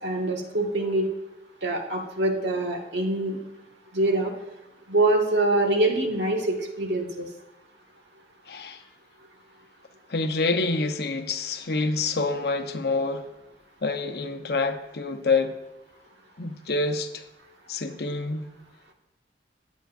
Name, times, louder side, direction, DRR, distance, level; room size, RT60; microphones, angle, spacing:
voice 1, 0.0-1.1 1.6-3.4 3.9-4.3 4.9-7.3, right 2 dB, 70° right, 1 dB, 1.6 m, -24 dB
voice 2, 8.5-8.8 10.1-13.3 13.8-15.5 16.4-17.2 17.7-18.5, left 3 dB, 55° left, 6 dB, 0.9 m, -27 dB
19.5 x 8.1 x 2.6 m, 0.97 s
head